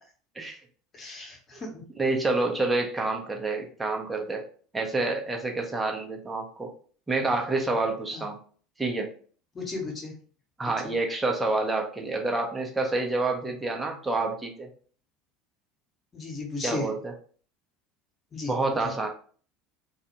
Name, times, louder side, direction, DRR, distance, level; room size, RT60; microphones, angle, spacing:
voice 1, 0.9-1.8 8.1-8.3 9.5-10.1 16.1-16.9 18.3-18.5 18.8-18.9, left 3 dB, 30° left, 0 dB, 1.1 m, -35 dB
voice 2, 2.0-4.4 4.7-6.7 7.1-8.4 8.8-9.1 10.6-14.7 16.6-17.1 18.5-19.1, right 2 dB, 15° right, 2 dB, 0.7 m, -28 dB
2.4 x 2.3 x 2.9 m, 0.43 s
figure-of-eight pair, 70°, 0 cm